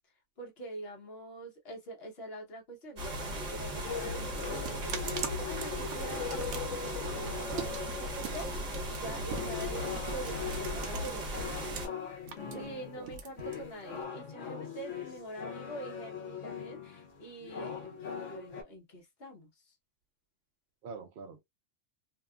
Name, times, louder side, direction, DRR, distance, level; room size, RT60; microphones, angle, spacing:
voice 1, 0.4-11.4 12.5-19.8, right 1 dB, 55° left, 1.2 m, -45 dB
sound 1, 3.0-11.9, right 1 dB, 40° right, 1.0 m, -37 dB
sound 2, 3.8-8.7 9.2-18.6, left 7 dB, 80° left, 1.1 m, -41 dB
sound 3, 4.4-11.8 12.1-14.0, right 8 dB, 80° right, 0.9 m, -43 dB
voice 2, 12.4-13.2 20.8-21.4, right 5 dB, 55° right, 0.6 m, -46 dB
2.8 x 2.3 x 2.3 m
omnidirectional pair, 1.2 m